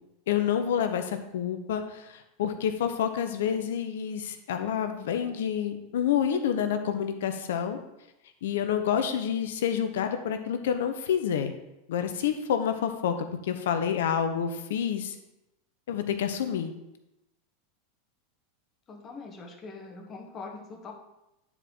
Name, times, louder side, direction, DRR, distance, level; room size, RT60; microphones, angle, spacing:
voice 1, 0.3-7.8 8.4-11.5 11.9-13.1 13.4-15.1 15.9-16.7, left 8 dB, 75° left, 8 dB, 0.9 m, -28 dB
voice 2, 18.9-20.9, left 4 dB, 30° left, 1 dB, 1.5 m, -42 dB
9.8 x 4.7 x 4.0 m, 0.91 s
hypercardioid pair, 105°, 0 cm